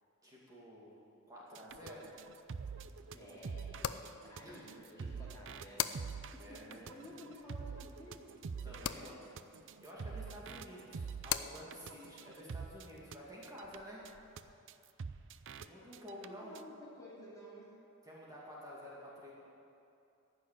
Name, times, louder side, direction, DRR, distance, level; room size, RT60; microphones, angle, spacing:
voice 1, 0.2-1.0 1.3-2.1 4.4-4.5 5.0-5.1 5.9-7.1 8.6-9.2 9.8-14.0 15.6-16.6 18.0-19.3, equal, 15° right, -6 dB, 2.4 m, -51 dB
sound 1, 1.5-13.2 13.4-13.8 14.1-14.2 14.4-14.5 14.7-14.8 15.0-15.7 15.9-16.3 16.6-16.7, right 5 dB, 60° right, 0.5 m, -46 dB
sound 2, 1.7-14.5, left 10 dB, 70° left, 0.5 m, -46 dB
voice 2, 3.1-8.3 8.6-9.3 15.7-17.8, equal, 15° left, -6 dB, 2.8 m, -54 dB
14.5 x 6.6 x 9.9 m, 2.7 s
head